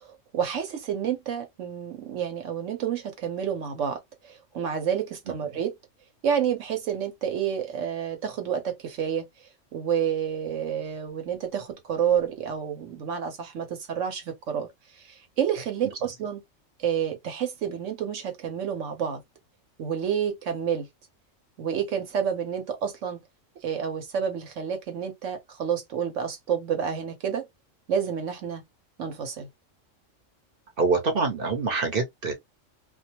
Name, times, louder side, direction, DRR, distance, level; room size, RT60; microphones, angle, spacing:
voice 1, 0.0-5.7 6.2-9.2 9.7-14.7 15.0-16.4 16.8-19.2 19.8-20.9 21.6-23.2 23.6-27.5 27.9-28.6 29.0-29.5, right 8 dB, 75° right, 1.1 m, -29 dB
voice 2, 30.8-32.3, right 4 dB, 50° right, 0.9 m, -25 dB
2.4 x 2.3 x 2.7 m
omnidirectional pair, 1.3 m